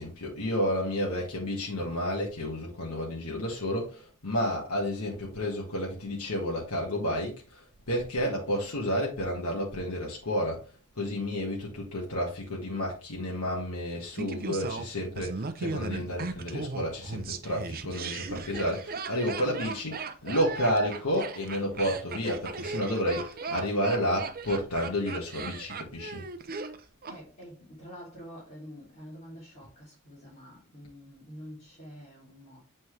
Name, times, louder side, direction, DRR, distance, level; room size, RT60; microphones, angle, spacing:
voice 1, 0.0-10.6 10.9-26.2, equal, 80° left, 1.7 m, -31 dB
Laughter, 14.2-27.2 27.4-27.5, right 4 dB, 45° right, 0.7 m, -37 dB
voice 2, 27.1-32.6, equal, 30° left, 3.0 m, -47 dB
7.8 x 4.2 x 3.3 m
head